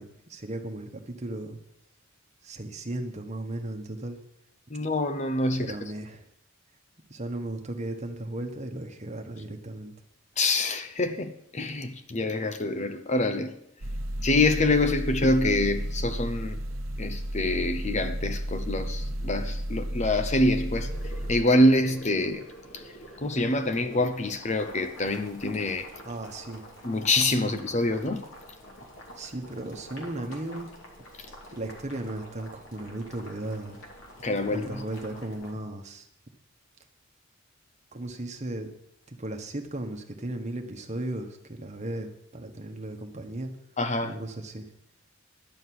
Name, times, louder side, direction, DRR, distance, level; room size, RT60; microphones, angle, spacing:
voice 1, 0.0-1.6 2.4-4.2 5.6-6.2 7.1-9.9 26.0-26.6 29.1-30.7 31.2-33.8 34.5-36.1 37.9-38.7 39.1-43.5 44.0-44.7, right 1 dB, 35° right, 1.4 m, -36 dB
voice 2, 4.7-5.7 10.4-13.5 14.2-16.6 17.0-20.9 21.3-22.5 22.7-22.9 23.2-25.9 26.8-28.2 34.2-34.7 43.8-44.1, left 2 dB, 35° left, 0.7 m, -26 dB
sound 1, 13.8-21.4, equal, 80° right, 1.0 m, -32 dB
Boiling, 20.7-35.5, equal, 70° left, 3.1 m, -47 dB
11.5 x 6.6 x 9.5 m
head